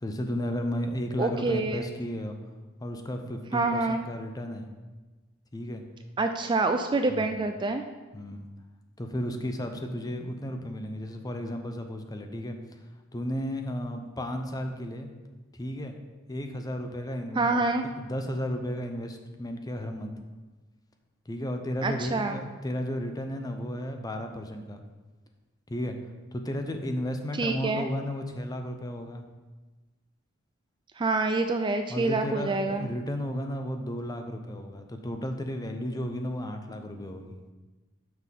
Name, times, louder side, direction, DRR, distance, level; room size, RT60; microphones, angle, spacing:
voice 1, 0.0-2.4 2.8-4.7 5.5-5.8 7.1-7.3 8.1-8.5 9.0-12.6 13.1-15.1 15.5-15.9 16.3-17.6 17.9-20.1 21.3-24.8 25.7-26.0 26.3-29.2 31.9-37.4, equal, 20° left, 5 dB, 0.6 m, -33 dB
voice 2, 1.2-1.8 3.5-4.0 6.2-7.8 17.4-17.8 21.8-22.4 27.4-27.9 31.0-32.9, right 3 dB, 25° right, 6 dB, 0.3 m, -26 dB
6.1 x 5.4 x 5.8 m, 1.2 s
head